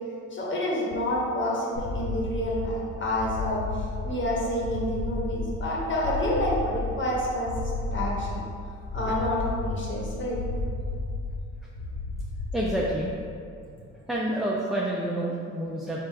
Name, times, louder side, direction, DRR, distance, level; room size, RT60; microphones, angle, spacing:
voice 1, 0.3-8.4 8.9-10.4, left 1 dB, 40° left, -4 dB, 1.2 m, -28 dB
sound 1, 1.7-13.1, left 2 dB, 85° left, 1.4 m, -33 dB
voice 2, 12.5-13.1 14.1-16.0, right 1 dB, ahead, -4 dB, 0.4 m, -28 dB
4.5 x 2.5 x 4.6 m, 2.4 s
cardioid pair, 90°, 30 cm